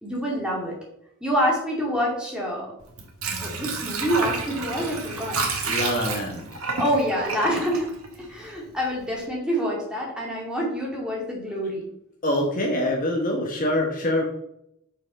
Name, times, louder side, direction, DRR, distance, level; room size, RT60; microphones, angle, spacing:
voice 1, 0.0-0.8 1.2-2.7 3.4-5.4 6.7-7.9 8.3-11.8, equal, 5° right, -3 dB, 2.4 m, -26 dB
Water / Sink (filling or washing), 2.8-8.7 9.1-9.2, right 3 dB, 70° right, 1.6 m, -30 dB
voice 2, 5.6-6.6 12.2-14.2, left 1 dB, 40° left, 1 dB, 1.2 m, -25 dB
6.3 x 5.9 x 5.4 m, 0.76 s
head